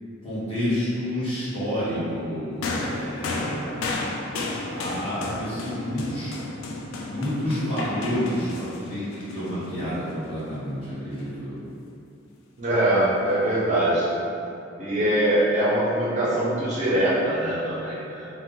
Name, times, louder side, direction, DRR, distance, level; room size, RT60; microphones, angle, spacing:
voice 1, 0.2-4.1 4.6-6.3 7.1-11.6, equal, 30° left, -12 dB, 1.1 m, -29 dB
sound 1, 2.6-10.1 11.1-11.3, left 2 dB, 85° left, 0.4 m, -33 dB
voice 2, 12.6-14.2 14.8-18.3, right 1 dB, 35° right, -8 dB, 0.5 m, -23 dB
2.8 x 2.1 x 3.7 m, 2.7 s
head